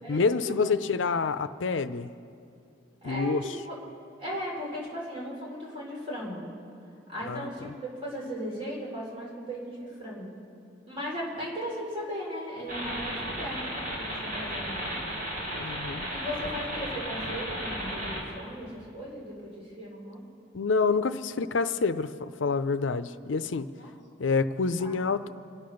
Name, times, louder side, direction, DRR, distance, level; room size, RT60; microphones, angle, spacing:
voice 1, 0.1-2.1 3.0-3.4 7.2-7.7 15.5-16.1 20.5-23.7 24.2-25.3, left 4 dB, 75° left, 12 dB, 0.5 m, -27 dB
voice 2, 3.0-3.7 4.2-6.4 7.1-7.7 8.0-10.3 10.9-14.9 16.1-20.2 23.8-23.9 24.8-25.0, equal, 25° right, -5 dB, 4.1 m, -37 dB
sound 1, 12.7-18.2, equal, 45° right, 4.0 m, -34 dB
26.0 x 8.7 x 6.4 m, 2.6 s
head